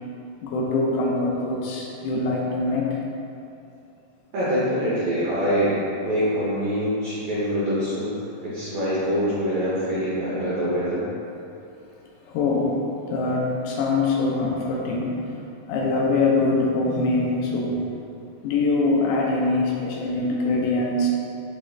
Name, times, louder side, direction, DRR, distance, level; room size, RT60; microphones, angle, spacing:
voice 1, 0.4-2.9 12.3-12.8 13.1-15.1 15.7-17.8 18.4-21.1, left 3 dB, 90° left, -2 dB, 3.0 m, -23 dB
voice 2, 4.3-8.1 8.4-11.0, equal, 90° right, -10 dB, 1.9 m, -24 dB
7.4 x 3.1 x 2.3 m, 2.7 s
omnidirectional pair, 5.3 m